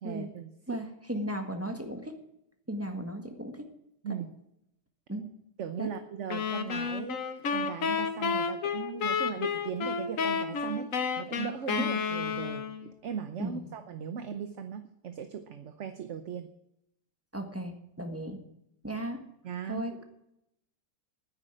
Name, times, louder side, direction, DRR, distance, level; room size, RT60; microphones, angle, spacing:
voice 1, 0.0-0.8 1.1-1.3 4.0-4.3 5.6-10.9 11.2-16.5 19.4-19.9, right 7 dB, 50° right, 9 dB, 1.0 m, -38 dB
voice 2, 0.7-2.2 2.7-3.7 4.1-4.2 5.1-5.3 5.8-5.9 11.8-11.9 13.4-13.6 17.3-18.4 18.8-19.3 19.7-20.0, equal, 10° right, 5 dB, 1.5 m, -36 dB
sound 1, 6.3-12.9, left 6 dB, 55° left, 1.4 m, -31 dB
10.0 x 9.6 x 9.1 m, 0.80 s
omnidirectional pair, 1.8 m